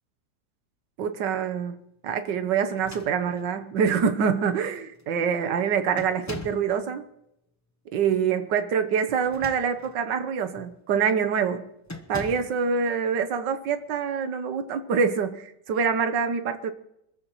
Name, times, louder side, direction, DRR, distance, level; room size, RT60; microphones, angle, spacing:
voice 1, 1.0-1.8 2.0-7.0 7.9-11.7 12.1-16.7, right 6 dB, 85° right, 9 dB, 1.7 m, -25 dB
sound 1, 2.7-3.6 4.5-4.6 4.9-5.3 6.0-6.7 9.1-10.0 10.6-10.8 11.9-12.6, left 2 dB, 15° left, 0.5 m, -41 dB
25.5 x 14.5 x 3.1 m, 0.80 s
omnidirectional pair, 1.9 m